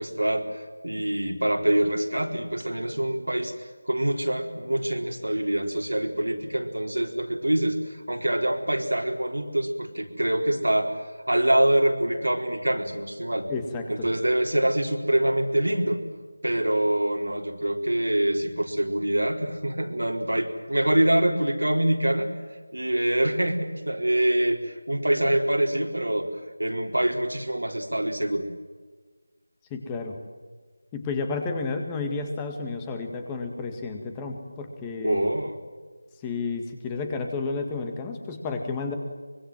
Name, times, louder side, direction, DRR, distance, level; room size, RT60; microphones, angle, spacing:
voice 1, 0.0-3.5 3.9-13.5 13.9-16.0 16.4-22.3 22.7-26.3 26.6-28.5 35.0-35.6, right 1 dB, 90° right, 3 dB, 4.1 m, -25 dB
voice 2, 13.5-14.1 29.7-30.2 30.9-35.3 36.2-38.9, left 4 dB, 10° left, 5 dB, 2.0 m, -31 dB
24.5 x 23.0 x 7.7 m, 1.4 s
figure-of-eight pair, 165°, 0 cm